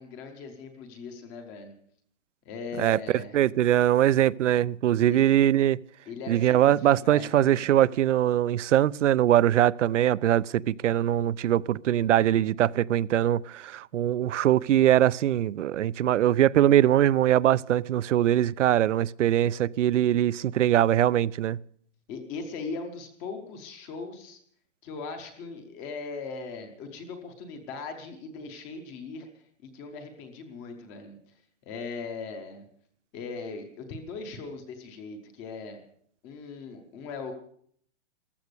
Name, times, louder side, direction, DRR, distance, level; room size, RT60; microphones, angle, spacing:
voice 1, 0.0-1.7 2.5-3.4 5.1-5.2 6.1-7.7 22.1-24.4 24.8-29.3 29.6-31.2 31.6-32.7 33.1-35.8 36.2-37.3, left 4 dB, 10° left, 0.6 m, -39 dB
voice 2, 3.3-5.8 6.3-21.6, right 12 dB, 90° right, 0.6 m, -22 dB
14.5 x 13.0 x 6.7 m
hypercardioid pair, 175°, 35 cm